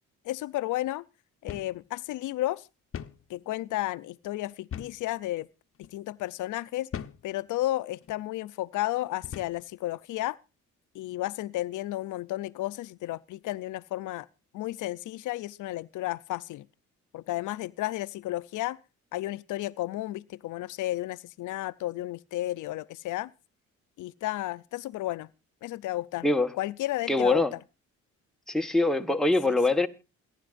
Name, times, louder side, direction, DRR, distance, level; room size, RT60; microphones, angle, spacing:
voice 1, 0.3-1.0 1.4-2.7 3.3-5.5 5.8-6.9 7.2-10.4 10.9-14.3 14.5-16.7 17.1-18.8 19.1-23.3 24.0-25.3 25.6-26.3 26.6-27.4 29.5-29.6, left 15 dB, 80° left, 0.6 m, -32 dB
sound 1, 1.5-1.8 2.1-2.2 2.9-3.2 4.7-5.1 5.7-5.9 6.9-7.3 8.0-8.2 9.2-9.6, left 9 dB, 45° left, 0.9 m, -39 dB
voice 2, 27.1-27.5 28.5-29.9, left 2 dB, ahead, 1.4 m, -23 dB
28.0 x 11.0 x 2.5 m
cardioid pair, 90°, 30 cm